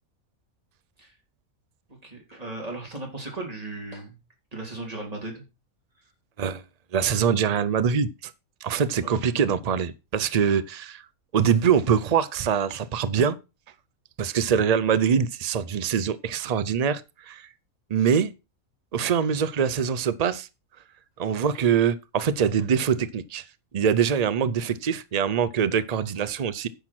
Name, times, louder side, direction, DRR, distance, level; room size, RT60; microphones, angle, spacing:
voice 1, 2.0-4.2 4.5-5.4 9.0-9.1, right 2 dB, 25° right, 3.3 m, -36 dB
voice 2, 6.9-8.3 8.6-11.0 11.3-13.4 14.2-17.0 17.3-17.5 17.9-18.3 18.9-20.5 21.2-23.4 23.7-26.7, right 7 dB, 70° right, 0.3 m, -23 dB
10.0 x 6.1 x 6.0 m
omnidirectional pair, 1.5 m